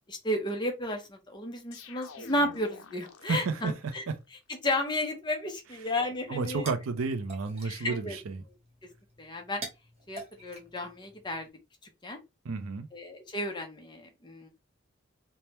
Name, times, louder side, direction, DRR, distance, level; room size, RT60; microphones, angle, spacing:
voice 1, 0.1-4.0 4.5-6.7 7.6-8.2 9.2-9.6 10.1-11.5 12.0-12.2 12.9-14.5, left 1 dB, 20° left, 0.6 m, -33 dB
sound 1, 1.7-3.9, left 4 dB, 80° left, 0.5 m, -49 dB
voice 2, 3.3-4.2 6.3-8.4 12.4-12.9, right 4 dB, 80° right, 0.5 m, -32 dB
sound 2, 6.2-11.5, right 2 dB, 30° right, 0.8 m, -48 dB
3.3 x 2.1 x 2.8 m
head